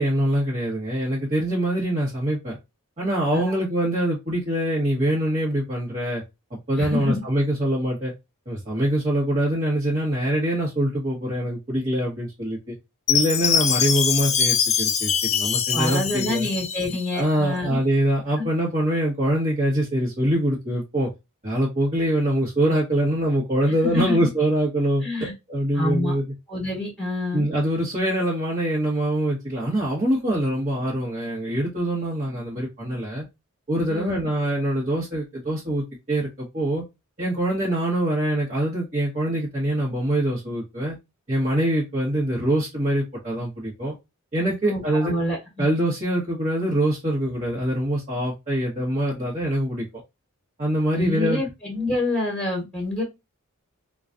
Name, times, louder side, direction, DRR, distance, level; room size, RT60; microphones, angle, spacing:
voice 1, 0.0-2.6 3.0-6.2 6.5-8.1 8.5-12.7 13.1-16.5 17.1-21.1 21.4-26.3 27.3-33.3 33.7-36.8 37.2-41.0 41.3-43.9 44.3-45.1 45.6-49.8 50.6-51.4, right 1 dB, 35° right, -7 dB, 1.2 m, -24 dB
voice 2, 6.8-7.2 15.7-17.8 18.4-18.5 23.8-24.3 25.0-25.3 25.7-26.1 26.5-27.4 33.9-34.3 44.6-45.7 50.9-53.0, left 2 dB, 5° left, -1 dB, 1.4 m, -27 dB
Chime, 13.1-17.2, left 7 dB, 30° left, 0.4 m, -23 dB
3.9 x 2.3 x 2.5 m, 0.22 s
head